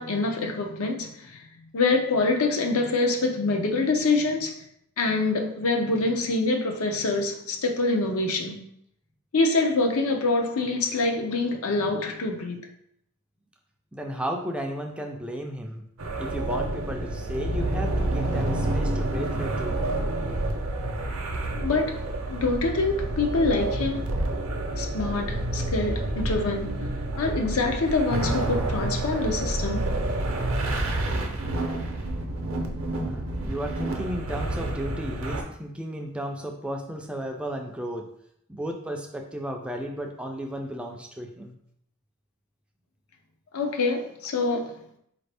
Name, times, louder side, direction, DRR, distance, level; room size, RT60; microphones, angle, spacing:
voice 1, 0.0-1.4 1.7-4.6 5.0-8.6 9.3-12.6 21.5-24.0 24.8-26.9 27.2-30.0 43.5-44.8, left 3 dB, 75° left, 0.6 m, -25 dB
voice 2, 13.9-15.9 16.2-19.8 33.0-38.1 38.5-41.5, equal, 5° right, 0.3 m, -34 dB
sound 1, 16.0-35.4, right 1 dB, 65° right, 0.6 m, -29 dB
4.2 x 2.6 x 3.3 m
head